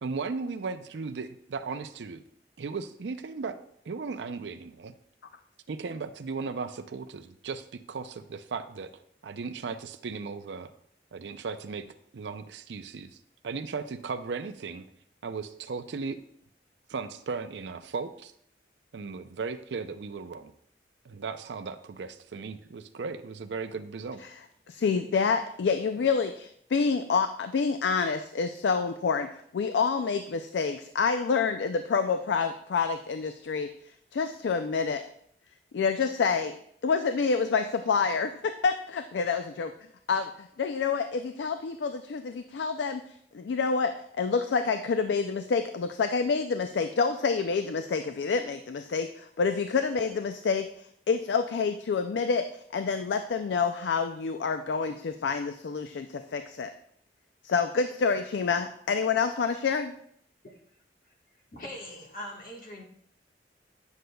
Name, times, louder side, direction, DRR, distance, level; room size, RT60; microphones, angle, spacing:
voice 1, 0.0-2.2 2.6-3.6 3.9-4.9 5.7-10.7 11.1-11.9 12.1-13.2 13.4-14.9 15.2-16.2 16.9-18.3 18.9-20.5 21.0-24.2, right 4 dB, 90° right, 10 dB, 0.5 m, -36 dB
voice 2, 24.7-33.7 34.1-35.0 35.7-39.7 40.1-43.0 43.3-52.5 52.7-56.7 57.4-60.0, left 5 dB, 85° left, 8 dB, 0.4 m, -28 dB
voice 3, 61.5-62.8, left 1 dB, 50° left, 0 dB, 1.4 m, -41 dB
9.5 x 6.4 x 2.2 m, 0.68 s
head